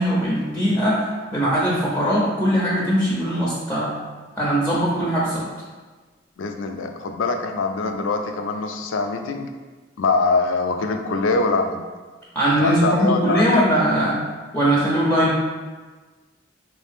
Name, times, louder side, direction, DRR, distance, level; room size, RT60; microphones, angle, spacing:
voice 1, 0.0-3.9 4.4-5.4 12.3-14.2 14.5-15.4, equal, 10° left, -6 dB, 0.5 m, -20 dB
voice 2, 6.4-9.5 10.0-11.8 12.6-13.7, left 3 dB, 90° left, 6 dB, 0.4 m, -23 dB
3.2 x 2.7 x 3.4 m, 1.4 s
head